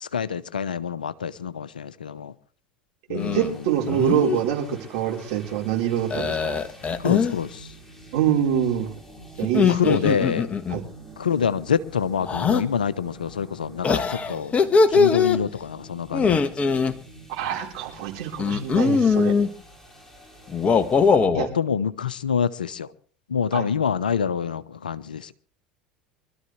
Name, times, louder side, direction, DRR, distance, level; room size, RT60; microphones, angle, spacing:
voice 1, 0.0-2.3 3.1-3.5 7.0-7.7 9.7-10.5 11.2-14.5 14.9-16.5 21.2-22.9 23.3-25.3, left 7 dB, 90° left, 0.9 m, -26 dB
sound 1, 3.1-3.5 3.9-4.4 6.1-7.4 9.4-10.8 12.2-12.6 13.8-15.4 16.1-16.9 18.4-19.5 20.5-21.5, left 5 dB, 30° left, 1.4 m, -21 dB
voice 2, 3.1-6.6 8.1-8.9 9.4-10.0 10.7-10.8 17.3-19.3 21.3-21.5 23.5-23.6, right 9 dB, 65° right, 4.4 m, -25 dB
sound 2, 3.2-21.1, right 1 dB, 10° left, 5.5 m, -47 dB
25.0 x 13.0 x 3.3 m
hypercardioid pair, 75°, 4 cm